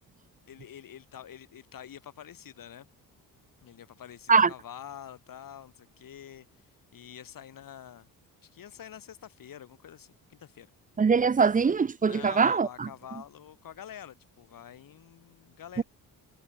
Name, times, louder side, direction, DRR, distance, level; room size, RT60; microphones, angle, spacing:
voice 1, 0.5-2.9 3.6-6.5 6.9-8.1 8.4-10.7 12.0-15.8, left 9 dB, 60° left, 5.6 m, -46 dB
voice 2, 11.0-12.9 15.8-15.9, right 5 dB, 20° right, 0.6 m, -22 dB
cardioid pair, 115°, 37 cm